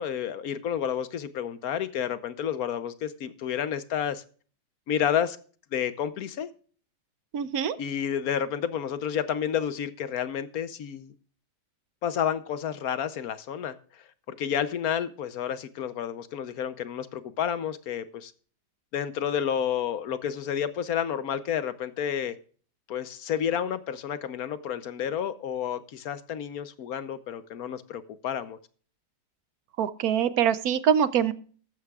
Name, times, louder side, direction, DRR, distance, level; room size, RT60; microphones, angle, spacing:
voice 1, 0.0-4.2 4.9-5.4 5.7-6.5 7.8-11.1 12.0-13.7 14.3-18.3 18.9-22.4 22.9-28.6, left 9 dB, 65° left, 13 dB, 1.1 m, -30 dB
voice 2, 7.3-7.8 29.8-31.3, right 8 dB, 65° right, 14 dB, 1.1 m, -24 dB
14.0 x 12.5 x 2.4 m, 0.42 s
omnidirectional pair, 1.8 m